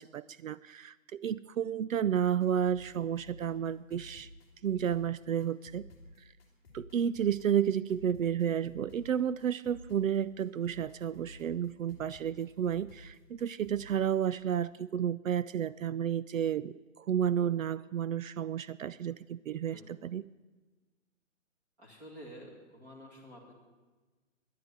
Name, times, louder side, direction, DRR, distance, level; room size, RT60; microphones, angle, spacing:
voice 1, 0.0-4.3 4.6-5.9 6.7-20.2, right 9 dB, 75° right, 17 dB, 0.5 m, -31 dB
sound 1, 2.1-14.2, left 1 dB, 10° left, 1.8 m, -54 dB
voice 2, 21.8-23.5, equal, 10° right, -1 dB, 1.9 m, -50 dB
11.5 x 11.0 x 9.5 m, 1.3 s
hypercardioid pair, 175°, 40 cm